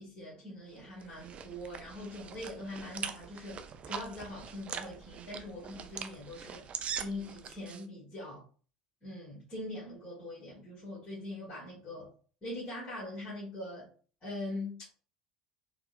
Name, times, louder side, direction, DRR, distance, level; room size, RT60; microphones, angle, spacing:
voice 1, 0.0-6.6 6.9-8.4 9.0-12.1 12.4-13.9 14.2-14.9, left 1 dB, 30° left, 1.5 m, -42 dB
sound 1, 0.7-7.8, right 7 dB, 35° right, 0.4 m, -43 dB
3.5 x 2.2 x 2.5 m
figure-of-eight pair, 70°, 4 cm